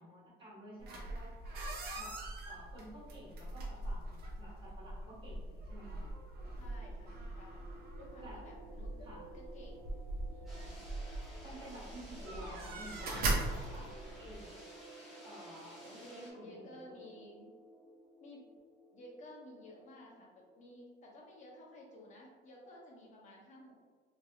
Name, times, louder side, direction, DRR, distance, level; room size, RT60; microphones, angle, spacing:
voice 1, 0.0-1.3 2.0-6.0 8.2-8.5 9.0-9.2 11.4-14.5 15.2-15.8 16.1-17.0, right 1 dB, 25° right, -10 dB, 1.3 m, -52 dB
sound 1, 0.8-14.4, right 2 dB, 55° right, 0.6 m, -41 dB
sound 2, 6.3-20.6, right 1 dB, 65° left, 1.2 m, -57 dB
voice 2, 6.6-7.7 8.0-8.9 9.3-9.8 10.3-10.8 15.8-17.5 18.2-18.5 18.9-23.8, left 1 dB, 40° left, -2 dB, 0.7 m, -54 dB
sound 3, 10.5-16.3, equal, ahead, 0.8 m, -54 dB
3.3 x 2.8 x 2.3 m, 1.5 s
cardioid pair, 175°, 20 cm